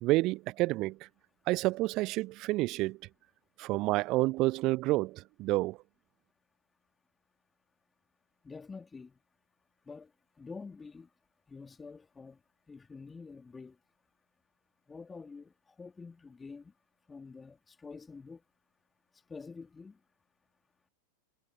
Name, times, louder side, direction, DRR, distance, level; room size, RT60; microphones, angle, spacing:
voice 1, 0.0-1.1 1.5-3.0 3.6-5.8, right 20 dB, 40° right, 0.5 m, -29 dB
voice 2, 8.4-9.1 9.8-10.1 10.4-11.1 11.5-12.4 12.7-13.8 14.9-16.7 17.1-18.4 19.3-20.0, left 4 dB, 15° left, 3.1 m, -47 dB
figure-of-eight pair, 90°, 0 cm